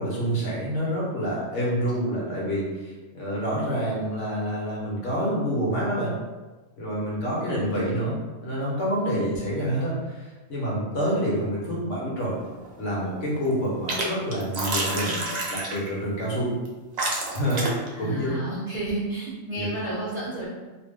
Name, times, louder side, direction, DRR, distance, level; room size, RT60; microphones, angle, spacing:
voice 1, 0.0-6.1 6.8-8.1 8.4-12.4 12.8-15.2 15.5-16.5 17.3-18.4 19.5-19.7, equal, 70° left, -5 dB, 1.2 m, -27 dB
sound 1, 12.4-12.9 13.2-14.0 14.3-15.9 16.6-16.7 17.0-17.9, right 2 dB, 60° right, 0.4 m, -29 dB
voice 2, 17.9-20.5, right 2 dB, 35° right, -9 dB, 0.8 m, -31 dB
2.8 x 2.0 x 3.5 m, 1.2 s
omnidirectional pair, 1.3 m